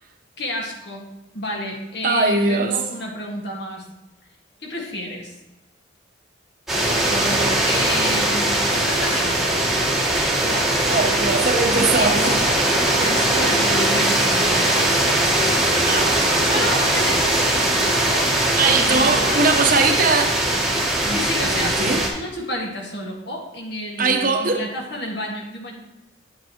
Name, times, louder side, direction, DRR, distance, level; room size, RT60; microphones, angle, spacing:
voice 1, 0.4-1.1 1.3-3.8 4.6-5.3 6.7-9.5 10.4-10.8 12.0-14.9 16.1-17.4 18.1-18.3 18.6-19.5 21.0-25.7, left 1 dB, 55° left, 0 dB, 1.7 m, -30 dB
voice 2, 2.0-2.8 10.9-12.4 15.8-16.2 18.6-20.4 21.0-22.0 24.0-24.6, right 3 dB, 45° right, 4 dB, 0.8 m, -21 dB
sound 1, 6.7-22.1, right 1 dB, ahead, 1.2 m, -20 dB
8.6 x 8.1 x 2.9 m, 0.98 s
head